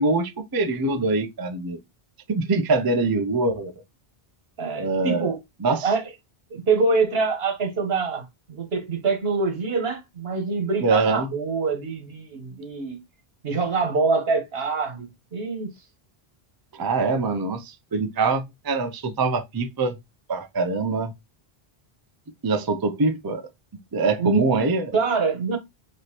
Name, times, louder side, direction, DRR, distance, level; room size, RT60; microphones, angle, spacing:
voice 1, 0.0-1.8 2.3-3.7 4.7-5.3 5.6-5.9 10.8-11.3 16.8-19.9 20.3-21.1 22.4-23.5 23.9-25.0, right 3 dB, 30° right, 0.4 m, -24 dB
voice 2, 4.6-5.4 5.8-6.1 6.5-13.0 13.4-15.7 24.2-24.5 24.9-25.6, right 4 dB, 75° right, 1.4 m, -25 dB
5.3 x 3.0 x 2.9 m
omnidirectional pair, 1.0 m